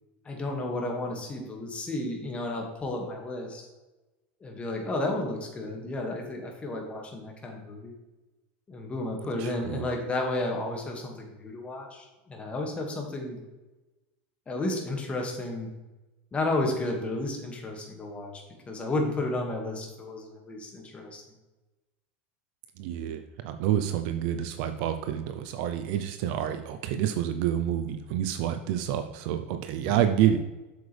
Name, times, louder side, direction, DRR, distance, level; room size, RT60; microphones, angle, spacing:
voice 1, 0.3-3.7 4.4-7.9 8.7-13.4 14.5-15.7 16.3-18.3 18.7-21.2 29.9-30.0, left 2 dB, 20° left, 1 dB, 2.0 m, -32 dB
voice 2, 9.4-9.9 22.8-30.4, right 10 dB, 65° right, 8 dB, 0.6 m, -28 dB
7.8 x 6.9 x 3.4 m, 1.1 s
supercardioid pair, 130°, 6 cm